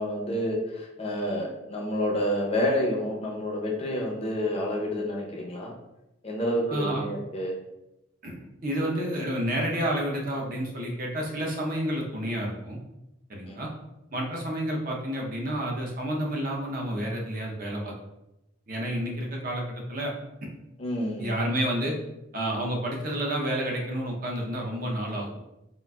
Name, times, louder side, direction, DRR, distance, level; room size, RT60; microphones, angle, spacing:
voice 1, 0.0-5.7 6.2-7.6 13.5-13.6 20.8-21.3, equal, 30° left, -2 dB, 0.5 m, -29 dB
voice 2, 6.7-7.0 8.2-12.8 13.3-13.7 14.1-17.9 18.7-20.1 21.2-22.0 22.3-25.3, right 1 dB, 45° right, -1 dB, 0.6 m, -30 dB
3.8 x 2.4 x 2.2 m, 0.92 s
head